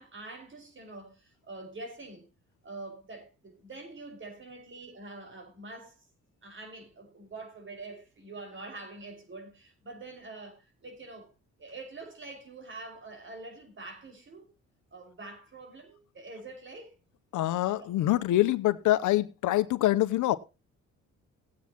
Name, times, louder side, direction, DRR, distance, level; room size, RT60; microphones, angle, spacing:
voice 1, 0.0-2.3 2.6-6.1 6.4-11.3 11.6-14.5 14.9-16.9 17.8-18.0, right 2 dB, 40° right, 5.3 m, -45 dB
voice 2, 17.3-20.4, left 15 dB, 80° left, 0.8 m, -25 dB
18.0 x 8.5 x 2.9 m
cardioid pair, 90°, 30 cm